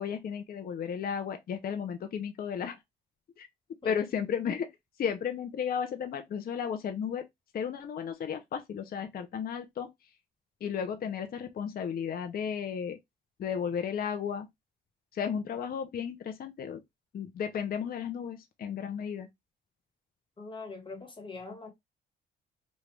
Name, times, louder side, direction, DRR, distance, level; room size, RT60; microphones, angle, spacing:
voice 1, 0.0-2.8 3.4-3.5 3.8-4.7 5.0-7.3 7.5-9.9 10.6-13.0 13.4-14.5 15.1-16.8 17.1-19.3, left 7 dB, 50° left, 0.6 m, -34 dB
voice 2, 20.4-21.7, left 3 dB, 25° left, 1.3 m, -42 dB
3.1 x 2.4 x 3.2 m
cardioid pair, 90°, 20 cm